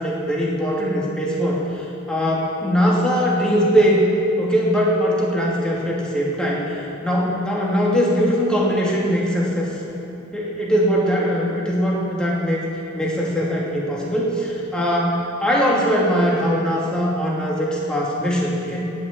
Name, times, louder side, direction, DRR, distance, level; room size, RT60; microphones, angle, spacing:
voice 1, 0.0-4.0 4.4-6.8 7.0-9.7 10.3-12.6 12.9-18.8, equal, 5° left, -5 dB, 2.5 m, -21 dB
16.5 x 6.6 x 8.9 m, 2.9 s
head